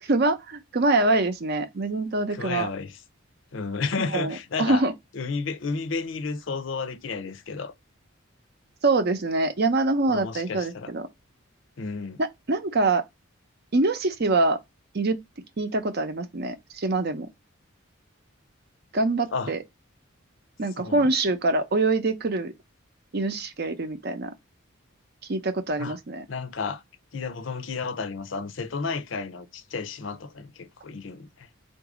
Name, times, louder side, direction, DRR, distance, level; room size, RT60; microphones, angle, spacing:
voice 1, 0.0-2.7 4.1-4.9 8.8-11.1 12.2-13.0 13.7-14.6 14.9-15.2 15.6-17.3 18.9-19.6 20.6-22.5 23.1-24.3 25.3-26.2, right 2 dB, 50° right, 0.6 m, -24 dB
voice 2, 2.3-3.0 3.5-4.8 5.1-7.7 10.1-10.9 11.8-12.2 19.3-19.5 20.8-21.1 25.8-26.0 26.3-26.8 27.1-31.5, left 4 dB, 65° left, 0.6 m, -32 dB
3.9 x 2.6 x 4.8 m
head